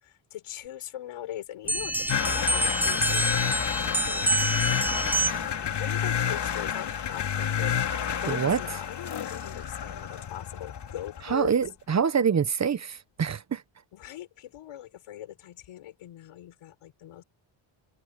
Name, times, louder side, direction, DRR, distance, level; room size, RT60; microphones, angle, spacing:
voice 1, 0.0-4.3 4.9-5.0 5.6-7.8 8.2-11.5 13.9-17.2, left 12 dB, 90° left, 5.1 m, -41 dB
sound 1, 1.7-5.6, right 1 dB, 5° right, 0.8 m, -27 dB
sound 2, 2.1-11.5, left 8 dB, 55° left, 3.1 m, -29 dB
voice 2, 8.3-8.6 11.2-13.6, right 7 dB, 35° right, 1.0 m, -25 dB
cardioid pair, 125°, 49 cm